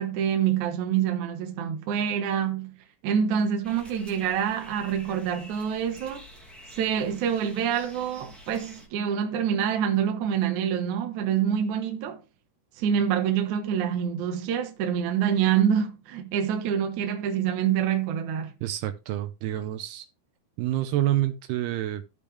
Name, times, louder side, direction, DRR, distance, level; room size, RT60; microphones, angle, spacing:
voice 1, 0.0-2.7 3.0-6.2 6.7-12.2 12.8-18.5, right 8 dB, 65° right, 2.1 m, -26 dB
sound 1, 3.6-8.9, equal, ahead, 0.9 m, -48 dB
voice 2, 18.6-20.1 20.6-22.0, right 13 dB, 80° right, 2.7 m, -28 dB
14.0 x 5.3 x 3.3 m
omnidirectional pair, 4.7 m